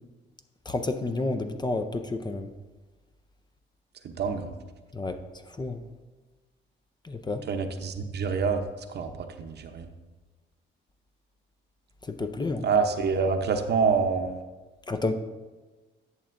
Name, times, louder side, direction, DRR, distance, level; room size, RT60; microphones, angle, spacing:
voice 1, 0.7-2.5 4.9-5.2 5.6-5.8 7.1-7.4 12.1-12.7 14.9-15.1, left 2 dB, 20° left, 7 dB, 0.5 m, -30 dB
voice 2, 4.0-4.5 7.5-8.6 8.9-9.9 12.6-14.4, right 5 dB, 55° right, 7 dB, 0.7 m, -26 dB
11.0 x 7.0 x 2.6 m, 1.2 s
cardioid pair, 90°, 20 cm